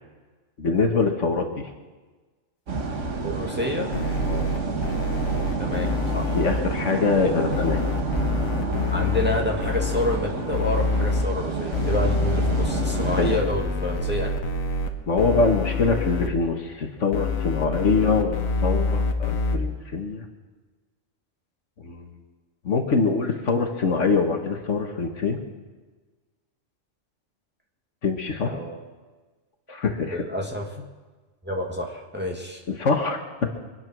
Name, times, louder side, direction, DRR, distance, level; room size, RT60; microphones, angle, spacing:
voice 1, 0.6-1.7 4.3-4.5 6.3-7.8 13.2-13.3 15.1-20.3 21.8-22.2 22.6-25.4 28.0-28.5 29.7-30.2 32.7-33.2, left 4 dB, 65° left, 4 dB, 1.8 m, -24 dB
sound 1, 2.7-13.4, right 4 dB, 65° right, 1.7 m, -29 dB
voice 2, 3.2-3.9 5.6-6.4 7.2-7.3 8.9-14.3 28.4-28.8 30.1-30.7 31.4-32.6, left 1 dB, 10° right, -1 dB, 1.9 m, -28 dB
sound 2, 3.9-6.6 7.5-10.2 10.5-11.2 11.7-14.9 15.2-16.3 17.1-19.6, left 4 dB, 80° left, 1.7 m, -26 dB
24.5 x 9.7 x 6.2 m, 1.3 s
omnidirectional pair, 1.4 m